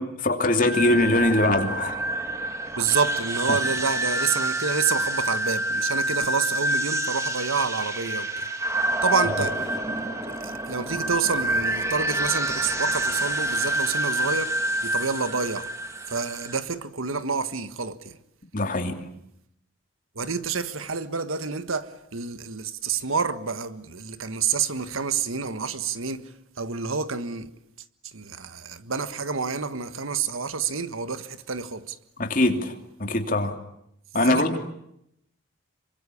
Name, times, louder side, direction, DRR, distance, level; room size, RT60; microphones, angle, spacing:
voice 1, 0.0-2.0 18.5-19.0 32.2-32.7 33.0-33.6 34.1-34.6, left 2 dB, 40° left, 2.9 m, -22 dB
sound 1, 0.6-16.6, right 1 dB, 15° right, 2.2 m, -27 dB
voice 2, 2.7-8.5 9.0-9.7 10.4-14.5 14.8-15.7 16.1-18.1 20.1-26.3 26.6-27.5 28.1-32.0 34.3-34.5, right 5 dB, 80° right, 1.5 m, -28 dB
27.0 x 24.5 x 8.6 m
head